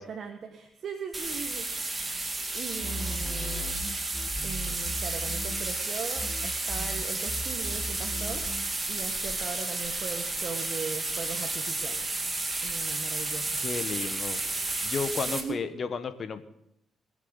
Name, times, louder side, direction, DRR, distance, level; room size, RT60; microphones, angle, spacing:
voice 1, 0.0-2.1 2.5-3.8 4.0-4.2 4.4-8.4 8.9-12.1 12.6-13.5 15.2-15.6, right 6 dB, 55° right, 4 dB, 1.5 m, -39 dB
sound 1, 1.1-15.4, right 2 dB, 20° right, 2.2 m, -32 dB
sound 2, 2.8-5.9 6.2-8.7, left 1 dB, 5° left, 2.2 m, -37 dB
voice 2, 13.6-14.4 14.8-16.4, left 5 dB, 45° left, 10 dB, 1.4 m, -33 dB
22.0 x 7.6 x 5.7 m, 0.80 s
cardioid pair, 90°, 0 cm